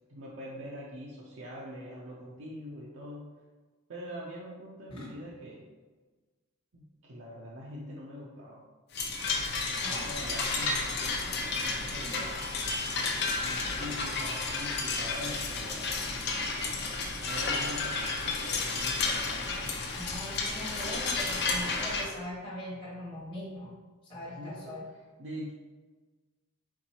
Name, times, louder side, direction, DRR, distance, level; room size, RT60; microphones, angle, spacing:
voice 1, 0.1-3.3 3.9-5.7 6.7-8.6 9.9-12.5 13.3-15.9 16.5-19.8 24.4-24.8 25.2-25.5, equal, 65° right, -5 dB, 0.6 m, -43 dB
sound 1, 8.9-22.1, left 3 dB, 55° left, 0.6 m, -32 dB
voice 2, 20.0-23.7 24.0-24.8, left 1 dB, 25° left, -8 dB, 0.9 m, -41 dB
4.5 x 3.8 x 2.8 m, 1.3 s
head